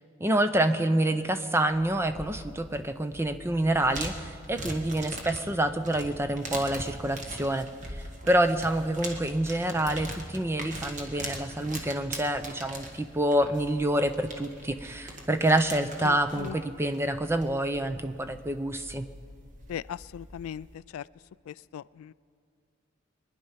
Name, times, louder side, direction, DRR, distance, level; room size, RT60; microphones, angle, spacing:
voice 1, 0.2-7.7 8.3-19.1, right 1 dB, 10° right, 9 dB, 0.6 m, -27 dB
sound 1, 1.7-20.7, right 1 dB, 35° right, 1.6 m, -42 dB
voice 2, 16.0-16.5 19.7-20.7 20.9-21.0 21.5-22.1, left 9 dB, 90° left, 18 dB, 0.3 m, -38 dB
24.5 x 10.5 x 5.7 m, 2.3 s
head